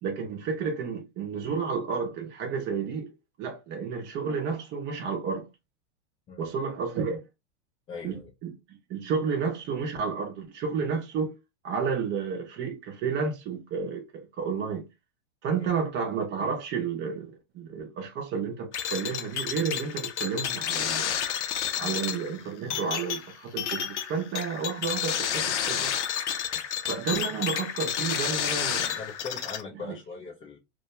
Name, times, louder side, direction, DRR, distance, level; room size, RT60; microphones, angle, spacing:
voice 1, 0.0-3.1 3.4-5.5 6.4-7.2 8.0-11.3 11.6-14.9 15.4-21.2 21.8-25.9 26.8-29.0 29.8-29.9, right 6 dB, 30° right, 0.6 m, -31 dB
voice 2, 7.9-8.3 15.6-15.7 21.8-22.0 29.0-30.6, left 4 dB, 15° left, 0.4 m, -40 dB
sound 1, 18.7-29.6, left 9 dB, 80° left, 0.6 m, -30 dB
2.2 x 2.2 x 2.8 m
hypercardioid pair, 105°, 35 cm